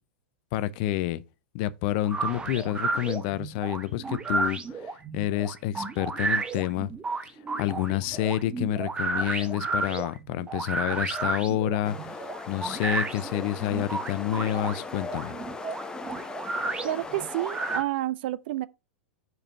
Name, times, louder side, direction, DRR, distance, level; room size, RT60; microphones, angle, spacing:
voice 1, 0.5-1.2 1.5-6.9 7.6-15.4, left 13 dB, 50° left, 0.5 m, -29 dB
sound 1, 2.0-17.8, right 3 dB, 15° right, 0.9 m, -32 dB
sound 2, 11.8-17.8, left 3 dB, 10° left, 0.8 m, -39 dB
voice 2, 16.8-18.7, right 15 dB, 55° right, 0.4 m, -29 dB
4.9 x 4.7 x 5.4 m
figure-of-eight pair, 95°, 7 cm